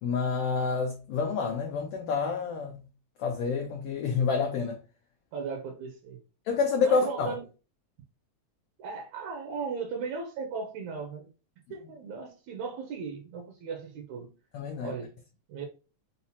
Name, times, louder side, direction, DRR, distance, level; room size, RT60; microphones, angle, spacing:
voice 1, 0.0-2.8 3.2-4.8 6.5-7.3 14.5-14.9, left 5 dB, 85° left, 1.3 m, -28 dB
voice 2, 5.3-6.2 6.8-7.5 8.8-11.3 11.7-14.3 14.8-15.2 15.5-15.7, right 5 dB, 80° right, 2.0 m, -37 dB
5.7 x 2.0 x 2.8 m
omnidirectional pair, 3.4 m